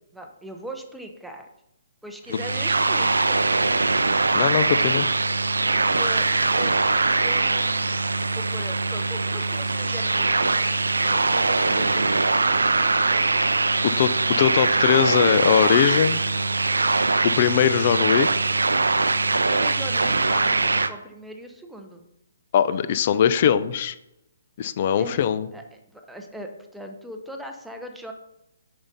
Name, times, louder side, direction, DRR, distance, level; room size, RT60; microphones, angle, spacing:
voice 1, 0.1-1.5 2.0-3.4 5.7-8.0 8.3-10.7 19.5-22.0 25.0-25.2 25.5-25.6 25.9-28.1, equal, 5° right, 3 dB, 0.8 m, -40 dB
sound 1, 2.3-20.9, right 3 dB, 85° right, 0.5 m, -22 dB
voice 2, 4.3-5.1 13.8-16.2 17.2-18.3 22.5-24.0 24.6-25.5, left 9 dB, 45° left, 13 dB, 0.5 m, -21 dB
6.9 x 5.3 x 4.2 m, 0.85 s
figure-of-eight pair, 135°, 0 cm